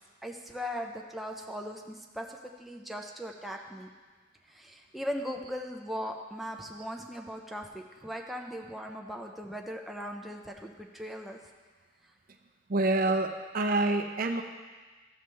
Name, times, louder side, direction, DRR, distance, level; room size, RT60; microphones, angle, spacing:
voice 1, 0.2-3.9 4.5-11.4, equal, ahead, 1 dB, 0.5 m, -39 dB
voice 2, 12.7-14.4, right 2 dB, 45° right, 5 dB, 0.6 m, -27 dB
14.0 x 7.2 x 3.3 m, 1.4 s
head